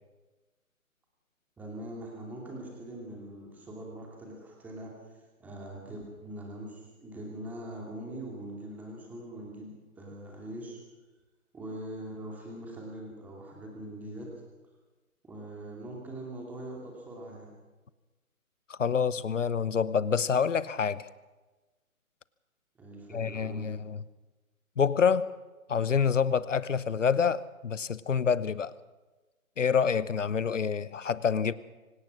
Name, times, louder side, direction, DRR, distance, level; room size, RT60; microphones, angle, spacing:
voice 1, 1.6-4.9 5.4-10.8 11.5-14.3 15.2-17.5 22.8-23.7, right 1 dB, 5° right, 2.6 m, -42 dB
voice 2, 18.7-21.1 23.1-24.0 24.8-25.3 25.7-28.7 29.6-31.5, left 6 dB, 60° left, 1.0 m, -27 dB
24.5 x 18.0 x 6.3 m
figure-of-eight pair, 155°, 43 cm